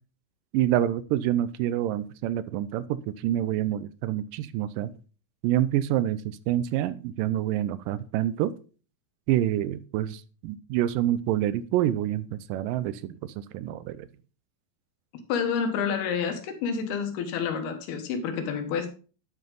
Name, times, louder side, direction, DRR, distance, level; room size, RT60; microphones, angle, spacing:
voice 1, 0.5-3.0 3.2-4.9 5.4-8.5 9.3-14.1, right 12 dB, 80° right, 2.0 m, -27 dB
voice 2, 15.3-18.9, left 6 dB, 85° left, 3.4 m, -29 dB
10.5 x 7.8 x 3.9 m
omnidirectional pair, 4.4 m